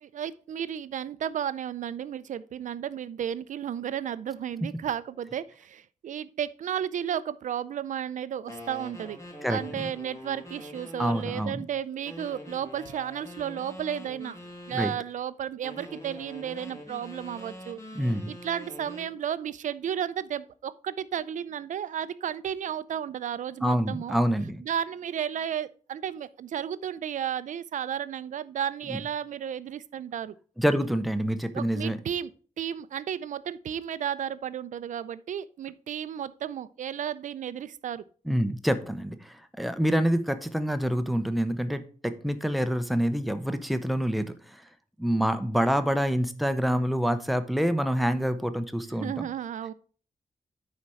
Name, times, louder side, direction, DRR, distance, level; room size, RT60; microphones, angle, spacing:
voice 1, 0.0-9.2 9.5-14.3 14.7-17.8 18.3-24.2 24.6-30.3 31.5-32.3 32.6-38.0 48.8-49.7, right 9 dB, 70° right, 0.5 m, -33 dB
sound 1, 8.5-11.5 12.0-15.0 15.6-19.1, left 1 dB, 25° left, 1.9 m, -44 dB
voice 2, 9.4-9.9 11.0-11.6 14.7-14.9 17.9-18.3 23.6-24.6 28.9-29.0 30.6-32.0 38.3-44.6 45.0-49.3, equal, ahead, 0.6 m, -27 dB
9.6 x 4.3 x 4.8 m
wide cardioid pair, 170°, 13 cm